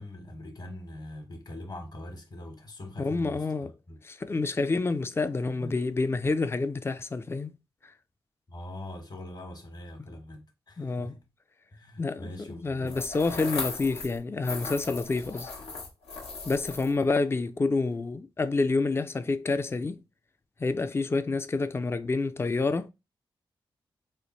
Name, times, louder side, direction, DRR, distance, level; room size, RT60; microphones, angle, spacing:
voice 1, 0.0-4.0 5.6-5.7 8.5-11.1 11.7-13.0, left 1 dB, 45° left, 1.1 m, -42 dB
voice 2, 3.0-3.7 4.0-7.6 7.8-7.9 10.8-11.1 12.0-15.5 16.4-20.0 20.6-22.9, left 3 dB, 25° left, 0.4 m, -28 dB
sound 1, 12.9-14.2 14.4-17.0, left 4 dB, 85° left, 0.9 m, -37 dB
3.2 x 2.2 x 4.1 m
cardioid pair, 55°, 10 cm